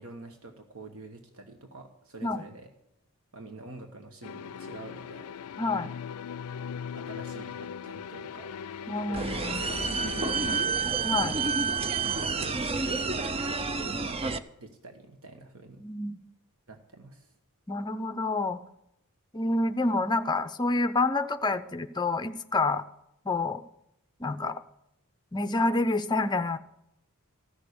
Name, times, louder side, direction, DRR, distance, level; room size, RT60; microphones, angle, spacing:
voice 1, 0.0-2.7 3.3-5.3 7.0-8.5 8.8-10.7 12.1-15.8 16.7-17.3, right 3 dB, 65° right, 4 dB, 1.3 m, -47 dB
sound 1, 4.2-10.6, left 7 dB, 85° left, 0.4 m, -39 dB
voice 2, 5.6-5.9 8.9-9.6 11.0-11.4 15.8-16.1 17.7-18.6 19.3-22.8 23.2-23.6 24.2-24.6 25.3-26.6, left 2 dB, 20° left, 10 dB, 0.6 m, -28 dB
sound 2, 9.1-14.4, right 4 dB, 25° right, 0.5 m, -29 dB
14.5 x 6.6 x 8.3 m, 0.84 s
head